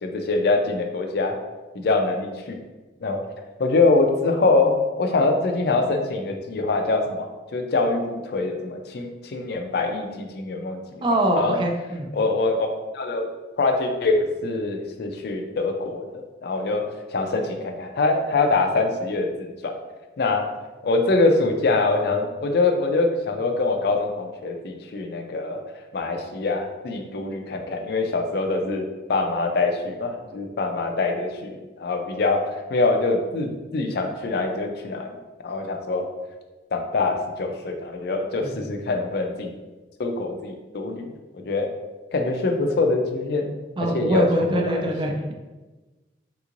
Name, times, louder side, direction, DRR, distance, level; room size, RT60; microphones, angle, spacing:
voice 1, 0.0-1.4 1.7-2.6 3.0-3.2 3.6-7.3 7.5-11.0 11.4-11.6 12.1-12.7 12.9-13.3 13.6-16.1 16.4-19.7 20.2-20.5 20.8-25.6 25.9-32.4 32.7-35.2 35.4-36.1 36.7-39.5 40.0-41.1 41.5-41.7 42.1-43.5 43.8-44.3 44.5-44.9, left 3 dB, 60° left, 4 dB, 0.4 m, -24 dB
voice 2, 11.0-12.1 38.4-38.5 43.8-45.3, right 1 dB, 30° right, 2 dB, 0.4 m, -23 dB
3.6 x 2.9 x 2.5 m, 1.2 s
head